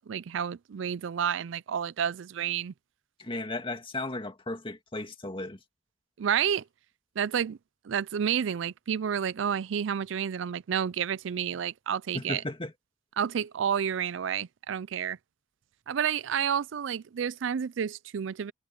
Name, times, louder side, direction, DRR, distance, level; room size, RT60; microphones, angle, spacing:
voice 1, 0.0-2.7 6.2-6.6 7.2-7.6 7.8-12.4 13.2-15.2 15.9-18.5, right 8 dB, 70° right, 0.4 m, -30 dB
voice 2, 3.2-5.6 12.1-12.7, left 2 dB, 25° left, 2.2 m, -35 dB
head